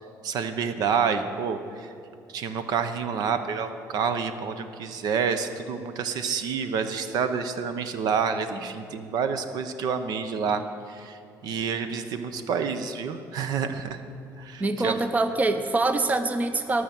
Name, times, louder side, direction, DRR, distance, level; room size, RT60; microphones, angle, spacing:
voice 1, 0.2-1.9 2.3-11.2 11.4-14.0 14.4-15.0, right 6 dB, 75° right, 9 dB, 0.8 m, -28 dB
voice 2, 14.6-16.8, right 2 dB, 20° right, 9 dB, 0.7 m, -24 dB
18.0 x 6.4 x 7.2 m, 2.6 s
cardioid pair, 120°, 7 cm